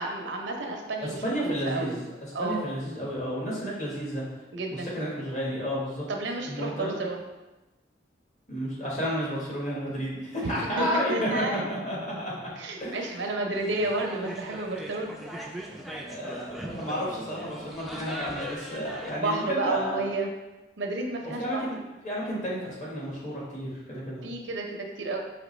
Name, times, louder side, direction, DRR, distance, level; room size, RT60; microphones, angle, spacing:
voice 1, 0.0-1.2 1.4-1.9 2.3-2.6 4.5-4.9 6.1-7.2 10.4-11.7 12.6-15.1 19.2-20.3 20.8-21.7 24.2-25.2, right 2 dB, 90° right, 2 dB, 0.7 m, -31 dB
voice 2, 1.0-4.2 4.7-6.0 6.4-6.9 8.5-12.5 12.8-13.3 16.0-20.1 21.2-21.8 22.0-24.2, equal, 40° left, -6 dB, 1.4 m, -32 dB
sound 1, 13.5-19.2, right 1 dB, ahead, 0.3 m, -40 dB
5.0 x 2.9 x 3.1 m, 1.1 s
head